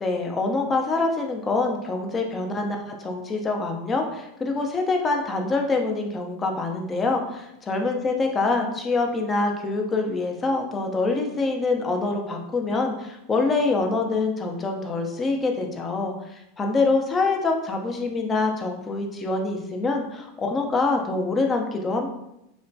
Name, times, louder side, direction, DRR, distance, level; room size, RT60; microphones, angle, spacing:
voice 1, 0.0-22.1, left 3 dB, 25° left, 2 dB, 0.5 m, -25 dB
2.9 x 2.1 x 2.6 m, 0.83 s
hypercardioid pair, 100°, 0 cm